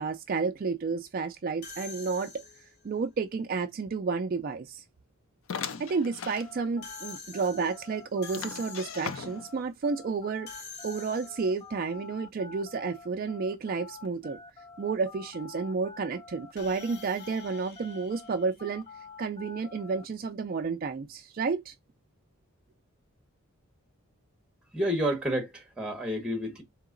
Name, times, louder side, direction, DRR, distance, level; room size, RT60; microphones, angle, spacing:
voice 1, 0.0-2.3 2.8-4.8 5.8-10.5 10.8-14.4 14.8-18.8 19.2-21.7, right 4 dB, 40° right, 0.3 m, -31 dB
sound 1, 1.6-2.9 6.8-9.3 10.5-11.7 16.6-19.1, left 4 dB, 50° left, 0.9 m, -47 dB
sound 2, 5.5-6.5 7.0-7.1 7.4-7.5 8.3-9.6, left 6 dB, 65° left, 0.4 m, -38 dB
sound 3, 6.4-16.5 16.8-20.0, left 5 dB, 25° left, 0.7 m, -48 dB
voice 2, 24.7-26.6, equal, 5° right, 1.0 m, -30 dB
3.8 x 2.9 x 3.8 m
head